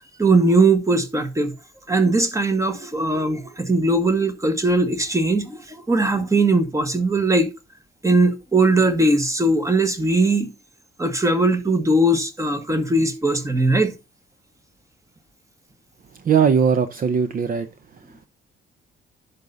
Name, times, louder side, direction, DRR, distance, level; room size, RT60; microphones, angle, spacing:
voice 1, 0.2-1.5 1.9-7.5 8.0-10.5 11.0-13.9, right 2 dB, 15° right, 1.5 m, -19 dB
voice 2, 16.1-17.7, right 7 dB, 45° right, 0.8 m, -19 dB
10.5 x 5.6 x 4.0 m
cardioid pair, 90°, 20 cm